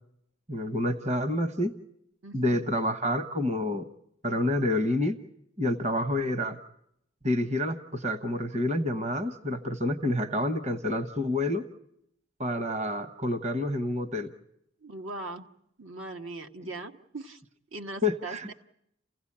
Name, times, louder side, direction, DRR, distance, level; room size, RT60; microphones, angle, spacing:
voice 1, 0.5-1.7 2.3-3.9 4.2-5.2 5.6-6.6 7.2-11.6 12.4-14.3 18.0-18.5, left 1 dB, 35° right, 10 dB, 1.0 m, -28 dB
voice 2, 2.2-2.6 14.8-15.5 15.8-17.4 17.7-18.5, right 2 dB, 80° right, 5 dB, 1.3 m, -40 dB
29.5 x 16.0 x 8.6 m, 0.79 s
head